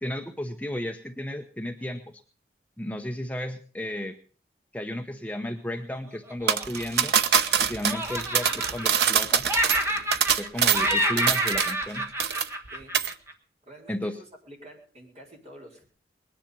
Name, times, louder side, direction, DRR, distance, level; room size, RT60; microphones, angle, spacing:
voice 1, 0.0-2.0 2.8-4.1 4.7-7.1 7.6-9.4 10.4-12.1 13.9-14.2, left 1 dB, 10° left, 5 dB, 0.8 m, -33 dB
Laughter, 6.3-7.5 7.8-9.2 9.5-10.5 10.7-13.3, equal, 15° right, 1.4 m, -28 dB
sound 1, 6.5-11.9 12.2-12.7 12.9-13.1, right 7 dB, 70° right, 0.9 m, -24 dB
voice 2, 7.6-8.8 12.7-12.9 13.7-15.8, right 1 dB, 40° right, -1 dB, 5.0 m, -49 dB
20.5 x 10.5 x 5.3 m, 0.41 s
head